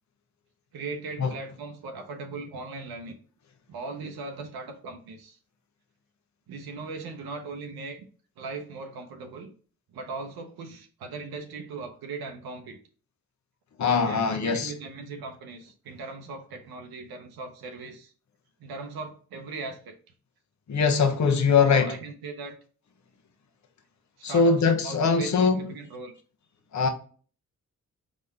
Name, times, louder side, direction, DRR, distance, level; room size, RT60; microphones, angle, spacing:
voice 1, 0.7-3.2 3.7-5.4 6.5-8.1 8.4-9.5 9.9-12.8 14.0-18.1 18.6-20.0 21.6-22.5 24.3-26.1, right 3 dB, 80° right, 0.7 m, -38 dB
voice 2, 13.8-14.7 20.7-21.9 24.2-25.6 26.7-26.9, left 5 dB, 50° left, 0.9 m, -22 dB
4.1 x 3.7 x 3.4 m
supercardioid pair, 45°, 36 cm